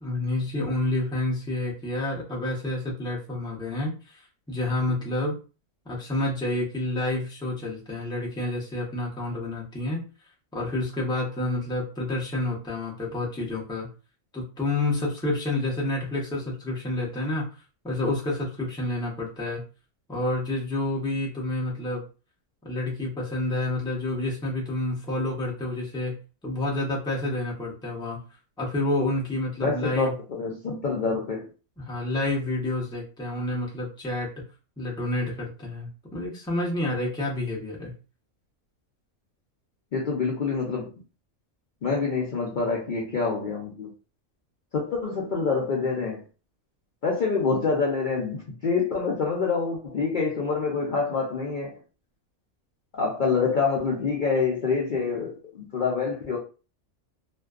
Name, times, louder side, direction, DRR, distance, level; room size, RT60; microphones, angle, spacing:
voice 1, 0.0-5.4 5.9-10.0 10.5-13.9 14.3-17.5 17.8-19.6 20.1-22.0 22.6-26.1 26.4-28.2 28.6-30.1 31.8-34.3 34.8-37.9, left 2 dB, 5° left, 0.4 m, -29 dB
voice 2, 29.6-31.5 39.9-40.9 41.8-43.9 44.7-46.2 47.0-51.8 52.9-56.4, left 4 dB, 80° left, 0.4 m, -26 dB
2.5 x 2.2 x 2.3 m
omnidirectional pair, 1.5 m